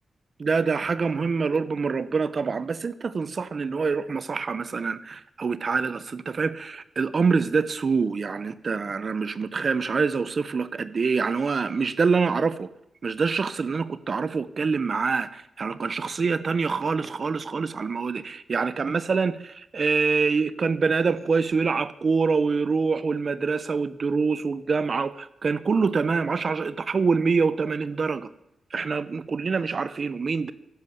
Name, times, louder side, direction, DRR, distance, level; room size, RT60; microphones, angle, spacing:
voice 1, 0.4-12.7 13.0-28.3 28.7-30.5, right 4 dB, 50° right, 15 dB, 0.8 m, -25 dB
11.5 x 10.5 x 7.7 m, 0.82 s
cardioid pair, 80°, 0 cm